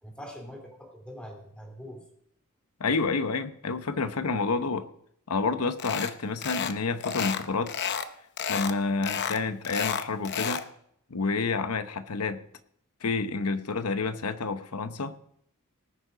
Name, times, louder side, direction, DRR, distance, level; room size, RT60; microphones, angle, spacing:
voice 1, 0.0-2.0 3.1-3.3, equal, 5° left, 2 dB, 2.7 m, -43 dB
voice 2, 2.8-4.8 5.3-7.7 8.5-10.6 11.1-12.4 13.0-15.1, left 4 dB, 80° left, 11 dB, 0.9 m, -29 dB
sound 1, 5.8-6.1 6.4-6.8 7.0-8.1 8.4-8.7 9.0-10.7, left 7 dB, 50° left, 0.7 m, -31 dB
19.0 x 6.7 x 5.0 m, 0.70 s
head